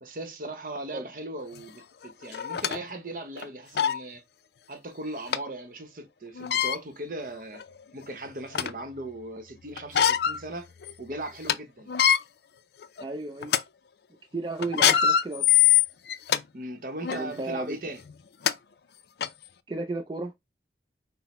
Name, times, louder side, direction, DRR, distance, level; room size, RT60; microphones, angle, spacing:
voice 1, 0.0-4.2 4.7-7.6 7.9-10.7 11.0-11.9 16.5-18.0, right 1 dB, 50° right, 0.8 m, -38 dB
sound 1, 1.6-1.7 2.3-2.8 3.4-3.5 3.8-4.0 5.3-5.4 6.4-6.8 7.5-7.6 8.1-8.8 9.8-10.4 10.8-10.9 11.3-11.5 11.9-12.2 12.8-13.0 13.4-13.6 14.6-16.4 17.0-17.2 18.1-18.2 18.5-18.6 19.2-19.3, left 9 dB, 65° left, 0.4 m, -23 dB
voice 2, 13.0-13.5 14.3-15.5 17.1-17.8 19.7-20.3, right 2 dB, 25° right, 0.4 m, -33 dB
5.9 x 2.1 x 4.1 m
head